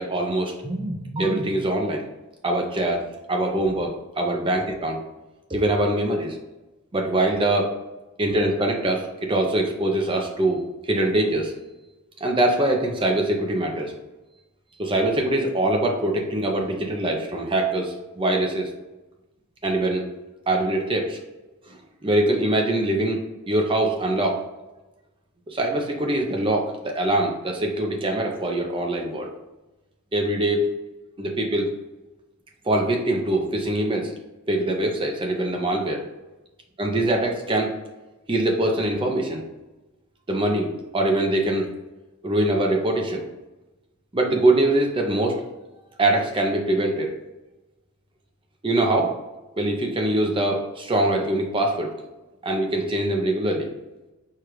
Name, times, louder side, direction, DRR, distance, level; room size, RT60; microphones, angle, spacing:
voice 1, 0.0-2.0 2.4-5.0 5.5-6.4 6.9-7.7 8.2-11.5 12.2-13.9 14.8-18.7 19.6-20.0 20.5-21.2 21.6-24.4 25.5-29.3 30.1-30.7 31.2-31.7 32.6-34.1 34.5-36.0 36.8-37.7 38.3-39.4 40.3-41.7 42.2-43.2 44.1-45.5 46.0-47.1 48.6-49.1 49.6-51.9 52.4-53.7, right 1 dB, 25° right, 1 dB, 0.5 m, -23 dB
4.6 x 2.4 x 4.8 m, 1.0 s
head